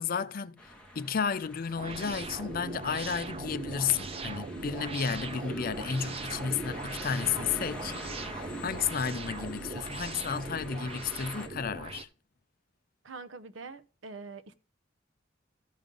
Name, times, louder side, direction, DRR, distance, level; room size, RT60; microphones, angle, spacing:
voice 1, 0.0-7.9 8.3-12.1, left 6 dB, 45° left, 0.5 m, -32 dB
sound 1, 0.6-11.5, left 1 dB, 5° left, 1.7 m, -46 dB
sound 2, 1.8-12.0, right 3 dB, 30° right, 0.6 m, -40 dB
voice 2, 13.0-14.5, right 4 dB, 75° right, 0.8 m, -44 dB
13.5 x 5.3 x 3.8 m
head